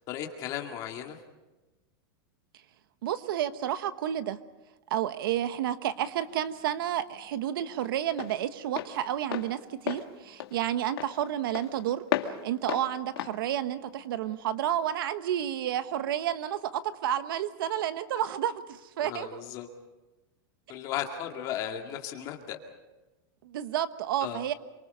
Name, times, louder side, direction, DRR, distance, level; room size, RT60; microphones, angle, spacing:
voice 1, 0.1-1.2 19.0-19.7 20.7-22.6 24.2-24.4, left 10 dB, 30° left, 3 dB, 2.2 m, -35 dB
voice 2, 3.0-4.4 4.9-12.0 12.4-19.4 23.4-24.5, right 11 dB, 65° right, 12 dB, 1.1 m, -31 dB
Walk footsteps, 5.9-14.6, left 11 dB, 75° left, 1.9 m, -37 dB
27.5 x 24.0 x 5.5 m, 1.1 s
supercardioid pair, 175°, 13 cm